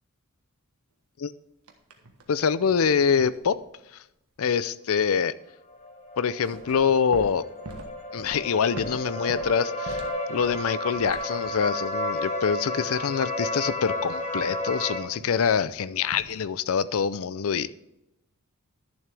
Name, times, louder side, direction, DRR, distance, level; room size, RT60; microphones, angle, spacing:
sound 1, 1.7-2.3 2.6-3.8 6.3-11.8 15.2-15.6 16.1-16.4, right 1 dB, 75° right, 1.4 m, -43 dB
voice 1, 2.3-3.6 3.9-4.0 4.4-5.3 6.2-7.5 8.1-10.0 10.3-17.7, left 6 dB, 65° left, 17 dB, 0.5 m, -25 dB
sound 2, 5.7-15.0, left 1 dB, 30° left, 1.3 m, -32 dB
12.0 x 7.2 x 3.4 m, 0.88 s
head